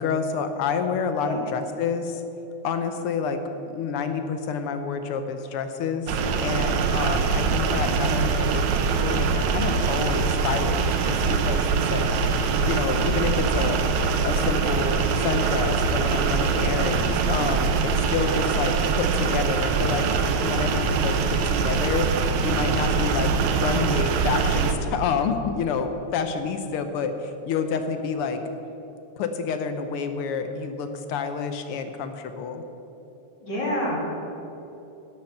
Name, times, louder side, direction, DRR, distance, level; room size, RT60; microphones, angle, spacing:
voice 1, 0.0-2.2 2.6-3.4 3.6-6.1 6.4-12.4 12.6-13.9 14.2-20.1 20.4-28.4 29.2-32.6, left 5 dB, 70° left, 8 dB, 1.4 m, -28 dB
sound 1, 6.1-24.7, right 5 dB, 80° right, 2.1 m, -23 dB
voice 2, 16.4-16.9 33.4-34.0, left 1 dB, 35° left, -5 dB, 3.6 m, -29 dB
11.5 x 8.9 x 7.7 m, 3.0 s
omnidirectional pair, 3.3 m